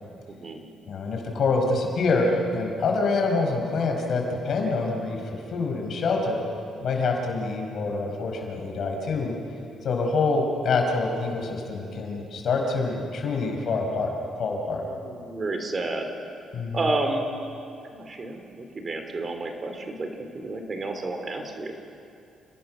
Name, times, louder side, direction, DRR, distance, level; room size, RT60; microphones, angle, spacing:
voice 1, 0.3-0.6 14.9-16.1 16.7-17.2 17.9-20.1 20.3-21.7, right 2 dB, 35° right, 5 dB, 3.2 m, -30 dB
voice 2, 0.9-5.2 5.5-6.4 6.8-9.3 9.8-14.1 14.4-14.8 16.5-16.8, left 3 dB, 60° left, 2 dB, 5.0 m, -26 dB
29.5 x 19.0 x 6.4 m, 2.6 s
cardioid pair, 90°, 0 cm